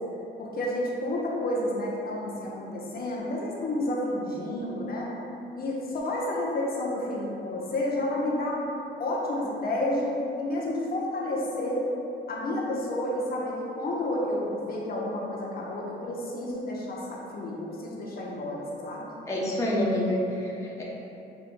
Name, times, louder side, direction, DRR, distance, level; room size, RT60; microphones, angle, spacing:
voice 1, 0.4-5.1 5.5-8.6 9.0-11.8 12.3-19.1, left 1 dB, 50° left, -4 dB, 0.9 m, -30 dB
voice 2, 19.3-20.8, left 1 dB, 15° left, -5 dB, 0.7 m, -27 dB
7.0 x 2.5 x 2.6 m, 2.9 s
cardioid pair, 90°, 20 cm